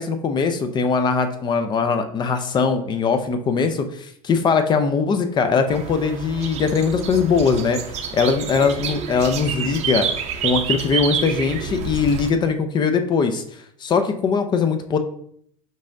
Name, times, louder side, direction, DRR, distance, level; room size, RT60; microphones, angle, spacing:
voice 1, 0.0-7.8 8.1-10.1 10.4-13.4 13.8-15.0, left 5 dB, 25° left, 8 dB, 0.4 m, -21 dB
sound 1, 5.7-12.3, right 7 dB, 40° right, 0.6 m, -28 dB
5.4 x 3.7 x 2.6 m, 0.66 s
supercardioid pair, 125°, 18 cm